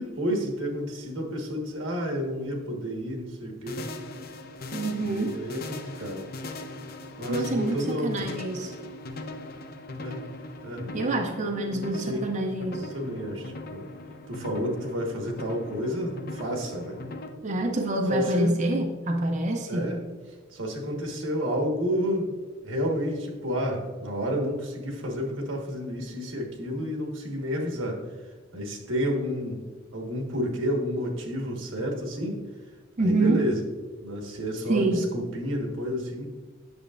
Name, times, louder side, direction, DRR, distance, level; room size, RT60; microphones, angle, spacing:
voice 1, 0.0-3.9 5.0-6.3 7.2-8.3 10.0-10.2 10.6-11.2 11.9-12.3 12.8-13.8 14.3-17.0 18.1-18.6 19.7-20.0 20.5-22.3 22.6-28.0 28.5-29.7 29.9-32.4 33.0-33.6 34.0-36.3, equal, 90° right, 1 dB, 1.4 m, -30 dB
sound 1, 3.7-17.3, left 2 dB, 50° left, 0.6 m, -40 dB
voice 2, 4.7-5.4 7.3-8.7 10.9-12.9 17.4-19.9 33.0-33.5 34.7-35.1, right 2 dB, 40° right, 3 dB, 0.5 m, -26 dB
8.3 x 6.7 x 2.4 m, 1.4 s
head